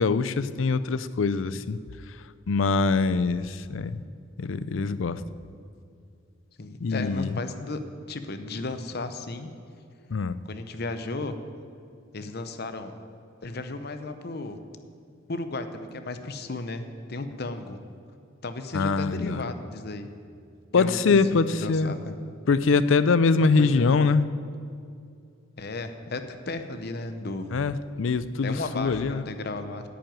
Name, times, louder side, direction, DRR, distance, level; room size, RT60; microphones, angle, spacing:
voice 1, 0.0-1.8 2.5-4.0 4.4-5.2 6.8-7.3 10.1-10.4 18.7-19.4 20.7-21.9 22.5-24.3 27.5-29.2, left 4 dB, 70° left, 14 dB, 0.5 m, -23 dB
voice 2, 6.6-7.8 8.1-9.5 10.5-11.4 12.1-12.9 13.4-14.6 15.3-17.8 18.4-20.1 20.8-22.2 23.4-23.9 25.6-27.5 28.4-29.8, left 2 dB, 50° left, 8 dB, 0.8 m, -34 dB
10.0 x 7.7 x 9.0 m, 2.4 s
head